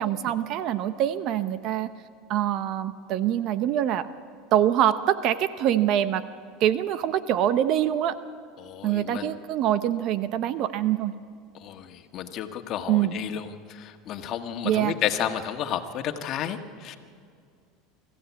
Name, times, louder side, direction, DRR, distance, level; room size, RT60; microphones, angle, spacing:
voice 1, 0.0-1.9 2.3-4.1 4.5-6.2 6.6-8.1 8.8-11.1 12.9-13.3 14.6-14.9, right 11 dB, 50° right, 12 dB, 0.8 m, -24 dB
voice 2, 8.6-9.3 11.6-17.0, left 10 dB, 45° left, 5 dB, 1.6 m, -32 dB
24.5 x 14.5 x 8.4 m, 2.2 s
supercardioid pair, 120°, 0 cm